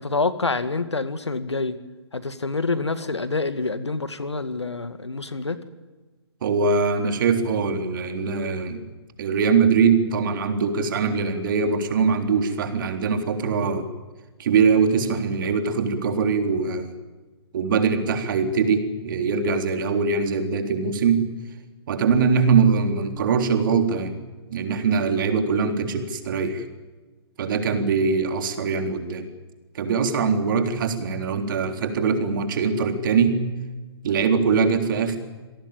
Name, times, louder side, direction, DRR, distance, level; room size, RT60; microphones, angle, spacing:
voice 1, 0.0-1.8 2.1-5.6, left 3 dB, 80° left, 12 dB, 2.1 m, -27 dB
voice 2, 6.4-8.8 9.2-13.9 14.4-16.9 17.5-21.2 21.9-24.1 24.5-26.6 27.4-29.3 29.7-33.5 34.0-35.2, right 5 dB, 50° right, 6 dB, 3.7 m, -22 dB
27.5 x 18.0 x 9.0 m, 1.3 s
figure-of-eight pair, 130°, 14 cm